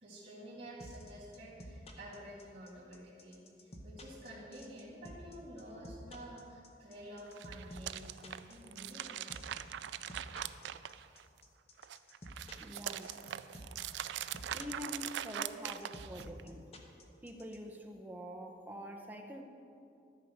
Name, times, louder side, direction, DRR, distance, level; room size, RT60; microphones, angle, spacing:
voice 1, 0.0-9.1, equal, 30° right, -12 dB, 2.7 m, -50 dB
sound 1, 0.8-17.6, left 1 dB, 35° left, 0.9 m, -51 dB
sound 2, 7.3-11.4 11.8-16.4, right 11 dB, 70° right, 0.3 m, -42 dB
voice 2, 12.6-13.1 14.5-16.7 17.2-19.4, equal, 10° right, 1 dB, 0.8 m, -45 dB
13.5 x 4.7 x 6.4 m, 2.6 s
head